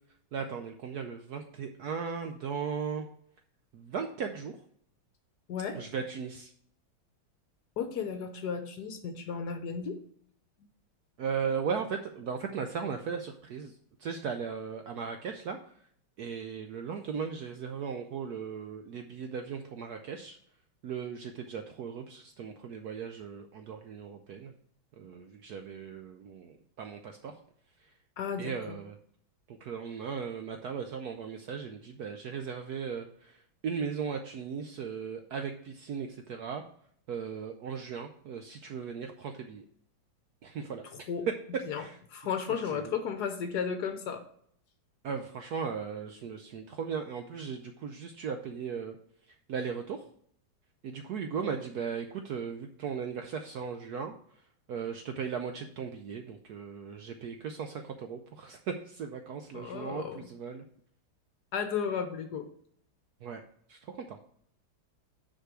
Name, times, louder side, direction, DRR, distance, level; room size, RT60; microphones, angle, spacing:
voice 1, 0.3-3.1 3.7-4.6 5.7-6.5 11.2-13.7 14.0-15.7 16.2-20.4 20.8-24.5 25.0-27.4 27.8-27.9 28.4-29.0 29.5-36.6 37.1-39.7 40.4-41.0 41.8-42.0 42.7-42.9 45.0-49.0 49.3-50.0 50.8-54.4 54.7-60.6 63.2-63.4 63.7-64.2, right 6 dB, 70° right, 6 dB, 0.9 m, -37 dB
voice 2, 5.5-5.8 7.8-10.0 28.2-28.8 41.1-41.3 41.6-41.8 42.1-44.2 59.5-60.3 61.5-62.5, left 7 dB, 65° left, 8 dB, 1.2 m, -34 dB
6.3 x 5.2 x 6.0 m, 0.64 s
omnidirectional pair, 2.2 m